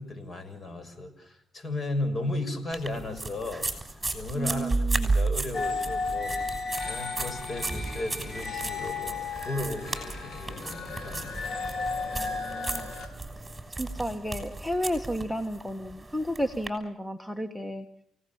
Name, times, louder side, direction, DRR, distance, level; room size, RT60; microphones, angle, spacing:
voice 1, 0.0-3.7 4.1-6.4 6.8-11.2, left 2 dB, 35° left, 9 dB, 6.6 m, -35 dB
sound 1, 2.7-16.7, right 3 dB, 15° right, 6.5 m, -34 dB
voice 2, 4.4-5.1 12.1-12.9 13.8-17.9, equal, 5° left, 8 dB, 1.5 m, -32 dB
sound 2, 5.5-13.1, left 4 dB, 60° left, 5.2 m, -34 dB
29.5 x 18.0 x 7.3 m, 0.72 s
cardioid pair, 90°, 0 cm